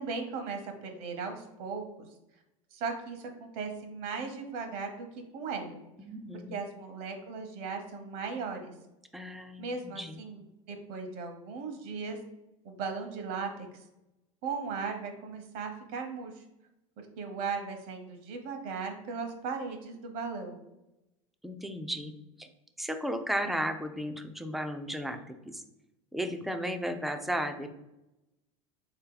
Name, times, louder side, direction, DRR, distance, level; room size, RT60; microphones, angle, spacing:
voice 1, 0.0-1.8 2.7-5.1 5.3-5.8 6.5-8.7 9.6-12.2 12.6-13.5 14.4-16.4 17.2-20.6, right 5 dB, 60° right, 5 dB, 0.9 m, -37 dB
voice 2, 6.0-6.6 9.1-10.3 21.4-22.5 22.8-25.6 26.1-27.7, equal, ahead, 6 dB, 0.3 m, -35 dB
4.1 x 2.8 x 3.8 m, 0.92 s
supercardioid pair, 125°, 17 cm